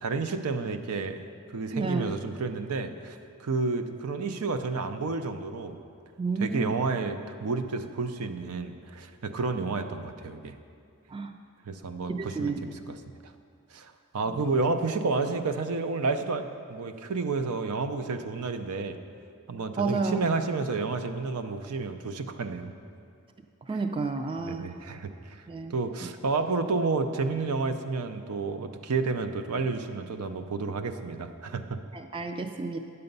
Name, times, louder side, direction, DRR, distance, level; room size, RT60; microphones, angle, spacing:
voice 1, 0.0-1.2 1.5-5.8 6.4-10.6 11.7-13.0 13.7-19.0 19.5-22.7 23.7-23.8 24.4-31.8, right 4 dB, 85° right, 8 dB, 0.6 m, -30 dB
voice 2, 1.7-2.1 6.2-6.7 11.1-11.3 12.1-12.7 14.3-14.4 19.8-20.2 23.7-24.7 25.5-25.7 26.0-26.1 31.9-32.8, right 4 dB, 25° right, 7 dB, 0.3 m, -31 dB
9.6 x 6.8 x 5.3 m, 2.4 s
head